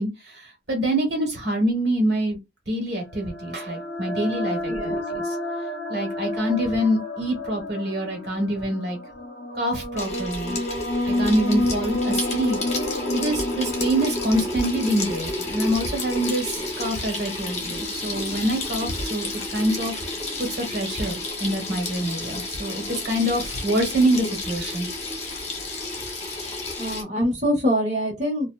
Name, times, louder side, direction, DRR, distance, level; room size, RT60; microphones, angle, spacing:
voice 1, 0.0-2.4 2.7-5.4 5.9-9.0 9.5-10.6 11.0-12.6 13.1-20.0 20.4-24.9, right 1 dB, 55° right, 1.2 m, -25 dB
sound 1, 3.0-16.7, left 1 dB, 65° left, 0.6 m, -30 dB
voice 2, 4.7-5.0 26.8-28.5, equal, 35° right, 0.9 m, -24 dB
Water tap faucet / Sink (filling or washing), 10.0-27.0, left 2 dB, 35° left, 0.9 m, -31 dB
2.7 x 2.1 x 2.2 m
head